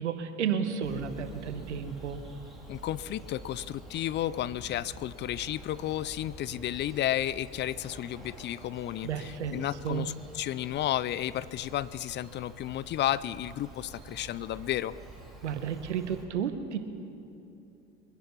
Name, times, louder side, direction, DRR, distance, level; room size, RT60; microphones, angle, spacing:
voice 1, 0.0-2.2 9.0-10.1 15.4-16.8, right 7 dB, 90° right, 9 dB, 1.2 m, -32 dB
Bird vocalization bird call bird song, 0.8-16.2, right 2 dB, ahead, 3.5 m, -48 dB
voice 2, 2.7-14.9, left 13 dB, 35° left, 18 dB, 0.4 m, -32 dB
23.5 x 10.0 x 5.9 m, 2.8 s
hypercardioid pair, 80°, 34 cm